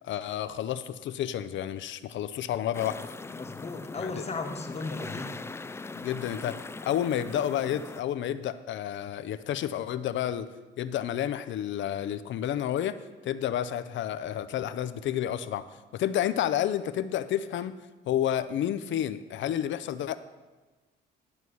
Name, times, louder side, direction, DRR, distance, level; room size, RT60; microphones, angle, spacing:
voice 1, 0.0-3.1 4.0-4.2 5.9-10.5 10.8-13.0 13.2-15.7 15.9-17.8 18.1-20.2, left 11 dB, 70° left, 13 dB, 0.6 m, -30 dB
sound 1, 2.7-8.0, left 3 dB, 15° left, 0.3 m, -41 dB
voice 2, 3.3-5.4, left 3 dB, 30° left, 5 dB, 1.2 m, -36 dB
11.5 x 4.7 x 6.9 m, 1.2 s
cardioid pair, 90°, 20 cm